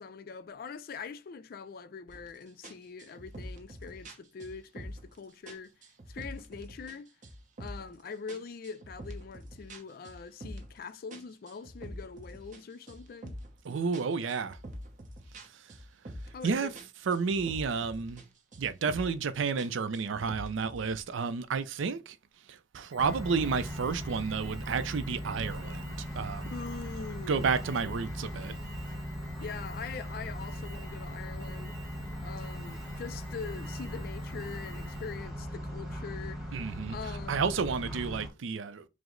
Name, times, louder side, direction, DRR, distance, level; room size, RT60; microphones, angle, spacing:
voice 1, 0.0-5.7 6.1-7.1 7.6-13.3 16.3-16.7 26.5-27.6 29.4-31.8 32.2-36.5 36.9-37.5, left 5 dB, 50° left, 0.3 m, -43 dB
sound 1, 2.1-2.3 2.6-5.2 5.5-7.0 7.2-7.9 8.3-10.8 11.1-13.6 13.9-16.5 16.7-18.3 18.5-19.2 19.6-21.0, equal, 40° right, 0.7 m, -45 dB
voice 2, 13.6-14.6 16.4-16.7 17.1-18.2 18.6-22.2 22.5-26.5 27.3-28.5 36.5-37.0 37.3-38.8, right 5 dB, 80° right, 0.4 m, -31 dB
Alarm, 22.9-35.3, left 1 dB, 15° right, 1.2 m, -53 dB
sound 2, 23.0-38.3, equal, ahead, 1.1 m, -39 dB
4.8 x 2.0 x 3.7 m
head